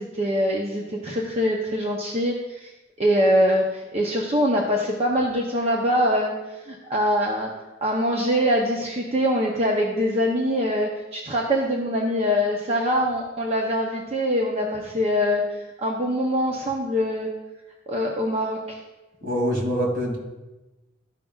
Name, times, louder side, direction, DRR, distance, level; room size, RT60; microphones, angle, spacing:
voice 1, 0.0-2.7 3.0-6.3 6.7-7.5 7.8-17.3 17.9-18.8, equal, 30° right, -1 dB, 0.7 m, -23 dB
voice 2, 19.2-20.2, equal, 65° right, -3 dB, 2.5 m, -24 dB
13.5 x 5.3 x 2.4 m, 1.1 s
head